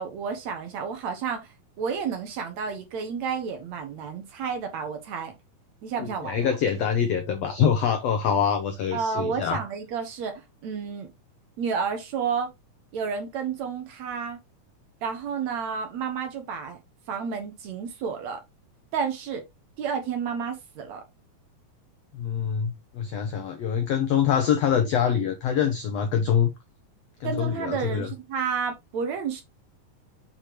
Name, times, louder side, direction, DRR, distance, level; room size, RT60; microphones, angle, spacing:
voice 1, 0.0-5.3 5.8-6.6 8.9-11.1 11.6-12.5 12.9-14.4 15.0-16.8 17.1-18.4 18.9-19.4 19.8-21.0 27.2-29.4, right 6 dB, 60° right, 2.2 m, -31 dB
voice 2, 6.0-9.6 22.1-26.5 27.2-28.1, left 8 dB, 85° left, 1.4 m, -25 dB
6.7 x 5.8 x 3.0 m
omnidirectional pair, 3.9 m